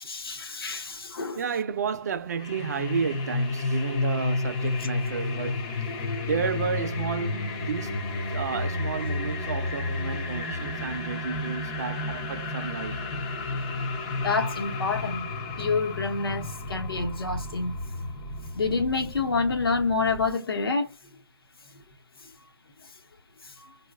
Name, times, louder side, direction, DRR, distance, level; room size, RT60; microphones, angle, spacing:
voice 1, 0.0-1.4 14.2-15.3 15.6-17.8 18.5-20.9 23.4-23.5, left 4 dB, 75° left, 0.9 m, -28 dB
voice 2, 1.4-8.1 8.3-13.0, right 6 dB, 45° right, 0.4 m, -32 dB
sound 1, 2.4-20.3, left 2 dB, 15° left, 0.4 m, -31 dB
3.9 x 2.3 x 2.3 m
hypercardioid pair, 155°, 12 cm